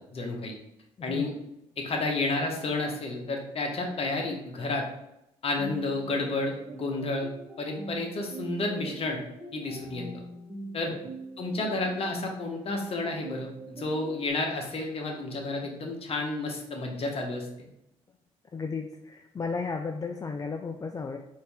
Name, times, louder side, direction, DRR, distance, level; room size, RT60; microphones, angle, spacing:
voice 1, 0.1-0.5 1.0-1.3 1.8-4.9 5.4-7.3 7.6-9.2 9.5-10.2 10.7-10.9 11.4-17.5, left 2 dB, 45° left, 2 dB, 1.1 m, -31 dB
sound 1, 5.6-14.3, right 2 dB, 25° right, 1.2 m, -43 dB
voice 2, 18.5-21.2, left 4 dB, 30° left, 4 dB, 0.4 m, -34 dB
4.1 x 2.7 x 3.5 m, 0.82 s
supercardioid pair, 60°, 13 cm